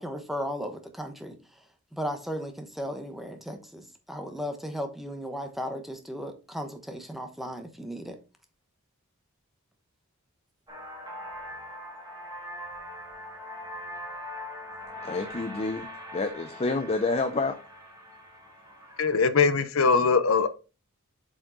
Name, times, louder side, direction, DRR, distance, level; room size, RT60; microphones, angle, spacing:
voice 1, 0.0-1.4 1.9-8.2, equal, ahead, 1.0 m, -35 dB
sound 1, 10.7-19.2, left 1 dB, 20° right, 2.1 m, -42 dB
voice 2, 15.0-15.9 16.1-17.6, left 3 dB, 30° left, 0.5 m, -28 dB
voice 3, 19.0-20.5, left 5 dB, 70° left, 0.7 m, -21 dB
7.4 x 5.1 x 3.8 m
head